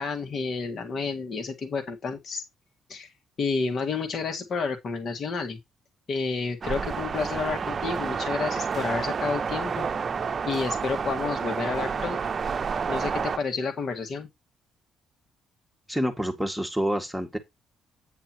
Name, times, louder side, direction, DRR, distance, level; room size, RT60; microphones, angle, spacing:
voice 1, 0.0-2.4 2.9-3.1 3.4-5.6 6.1-9.9 10.5-12.2 12.9-14.3, left 4 dB, 55° left, 1.9 m, -30 dB
sound 1, 6.6-13.4, right 6 dB, 40° right, 0.7 m, -29 dB
voice 2, 15.9-17.4, equal, ahead, 2.0 m, -27 dB
9.4 x 8.8 x 3.0 m
cardioid pair, 90°, 0 cm